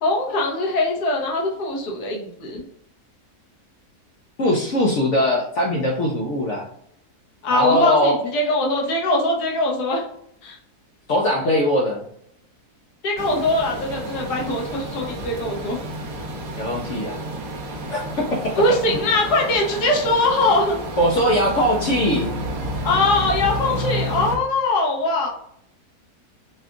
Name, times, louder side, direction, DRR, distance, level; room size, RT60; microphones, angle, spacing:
voice 1, 0.0-2.6 7.4-10.0 10.4-10.6 13.0-15.8 18.6-20.8 22.8-25.3, left 2 dB, 85° left, -1 dB, 1.6 m, -21 dB
voice 2, 4.4-6.7 7.5-8.1 11.1-12.0 16.6-17.2 17.9-18.5 18.9-19.0 21.0-22.4, equal, 60° left, -1 dB, 0.8 m, -21 dB
sound 1, 13.2-24.3, equal, 65° right, 1.4 m, -30 dB
4.2 x 2.4 x 3.6 m, 0.70 s
omnidirectional pair, 1.7 m